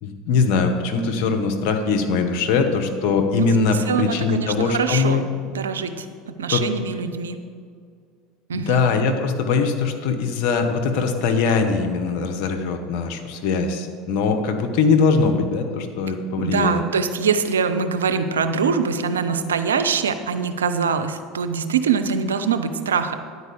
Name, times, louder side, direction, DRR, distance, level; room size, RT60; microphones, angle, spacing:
voice 1, 0.0-5.2 6.5-6.6 8.5-16.8, left 4 dB, 60° left, 5 dB, 1.0 m, -21 dB
voice 2, 3.9-7.4 8.5-8.8 16.4-23.2, right 6 dB, 90° right, 8 dB, 0.5 m, -23 dB
9.8 x 4.7 x 6.9 m, 2.2 s
hypercardioid pair, 80°, 0 cm